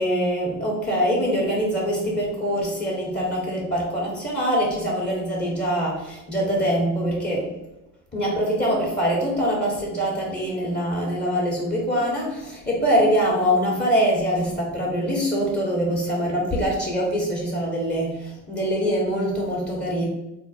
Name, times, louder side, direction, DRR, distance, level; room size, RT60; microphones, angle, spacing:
voice 1, 0.0-7.5 8.1-20.1, equal, 30° left, -3 dB, 1.3 m, -24 dB
3.6 x 2.1 x 4.2 m, 0.96 s
supercardioid pair, 70°, 36 cm